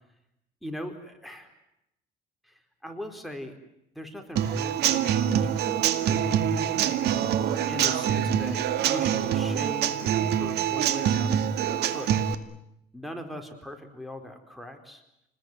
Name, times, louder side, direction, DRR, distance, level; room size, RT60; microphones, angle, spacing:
voice 1, 0.6-1.5 2.4-3.5 3.9-7.2 7.7-8.6 8.8-11.4 11.9-12.1 12.9-15.0, equal, ahead, 6 dB, 4.5 m, -40 dB
Human voice / Acoustic guitar / Drum, 4.4-12.3, right 9 dB, 75° right, 2.2 m, -25 dB
29.0 x 21.0 x 9.4 m, 0.81 s
cardioid pair, 110°, 17 cm